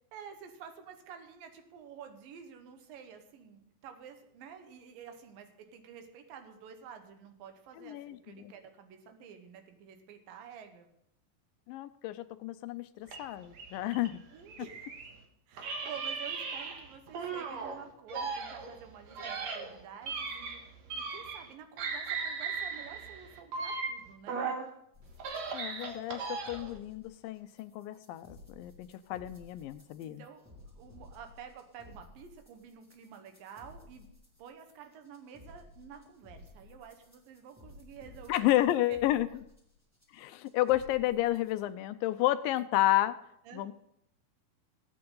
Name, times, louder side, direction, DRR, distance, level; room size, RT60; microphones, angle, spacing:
voice 1, 0.1-10.9 14.3-14.9 15.5-24.4 30.0-34.1 34.4-39.0 43.5-43.7, right 7 dB, 80° right, 6 dB, 3.0 m, -50 dB
voice 2, 7.8-8.5 11.7-14.2 25.5-30.2 38.3-39.3 40.1-43.2 43.5-43.7, left 15 dB, 85° left, 13 dB, 2.3 m, -31 dB
sound 1, 13.1-15.2 15.6-17.8 18.1-21.5 21.8-24.7 25.1-26.8, right 5 dB, 60° right, 2.3 m, -38 dB
sound 2, 24.9-41.6, left 2 dB, 10° right, 1.2 m, -56 dB
19.0 x 8.6 x 3.9 m, 0.75 s
omnidirectional pair, 4.1 m